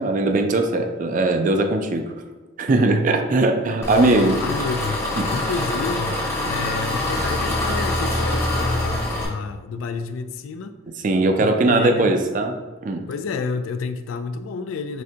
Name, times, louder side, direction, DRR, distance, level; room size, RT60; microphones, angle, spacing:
voice 1, 0.0-2.1 2.6-4.4 5.2-5.3 11.0-12.6 12.8-13.1, right 2 dB, 40° right, 6 dB, 0.3 m, -20 dB
Engine, 3.8-9.2, left 1 dB, 15° left, 0.5 m, -24 dB
voice 2, 3.9-10.7 11.4-12.1 13.1-15.0, left 4 dB, 75° left, 9 dB, 0.3 m, -29 dB
6.1 x 2.2 x 2.8 m, 1.2 s
head